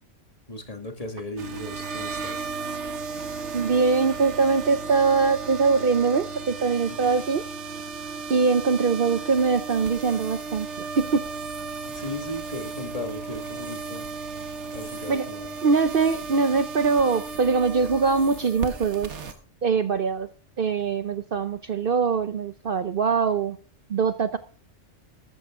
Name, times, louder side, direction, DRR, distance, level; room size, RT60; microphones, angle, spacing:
voice 1, 0.5-2.6 6.9-7.0 11.9-14.1 14.7-15.5, left 1 dB, 30° left, 5 dB, 1.9 m, -36 dB
sound 1, 1.4-19.3, right 4 dB, 70° right, 1.5 m, -35 dB
voice 2, 3.5-7.4 8.3-10.7 11.0-11.2 15.1-15.3 15.6-19.1 19.6-20.3 20.6-23.6 23.9-24.4, right 5 dB, 50° right, 11 dB, 0.8 m, -22 dB
sound 2, 9.3-19.3, equal, 5° left, 6.2 m, -50 dB
13.5 x 13.5 x 3.6 m, 0.39 s
omnidirectional pair, 1.3 m